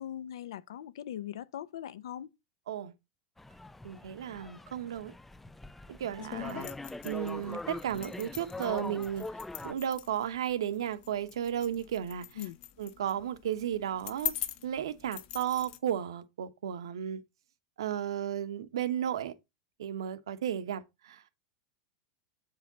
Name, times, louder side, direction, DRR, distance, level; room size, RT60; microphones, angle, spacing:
voice 1, 0.0-2.3 12.4-12.6, left 11 dB, 75° left, 0.7 m, -40 dB
sound 1, 3.4-9.7, left 2 dB, 5° left, 0.3 m, -43 dB
voice 2, 3.8-5.1 5.9-6.7 7.0-9.3 9.6-12.3 12.8-14.3 14.6-17.2 17.8-19.3 19.8-21.2, right 10 dB, 80° right, 1.0 m, -34 dB
sound 2, 6.2-15.8, left 11 dB, 50° left, 1.2 m, -43 dB
8.0 x 4.9 x 4.0 m
hypercardioid pair, 105°, 3 cm